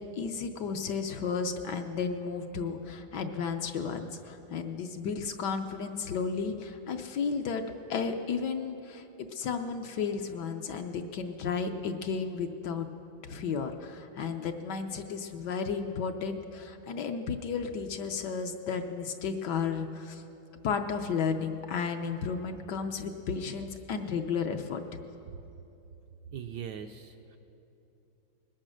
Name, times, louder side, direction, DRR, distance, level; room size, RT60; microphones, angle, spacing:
voice 1, 0.2-7.6 7.9-9.0 9.3-12.9 13.2-20.2 20.6-25.0, left 5 dB, 65° left, 6 dB, 1.2 m, -33 dB
voice 2, 26.3-27.4, right 8 dB, 75° right, 6 dB, 1.0 m, -40 dB
20.5 x 8.7 x 6.3 m, 2.9 s
omnidirectional pair, 2.2 m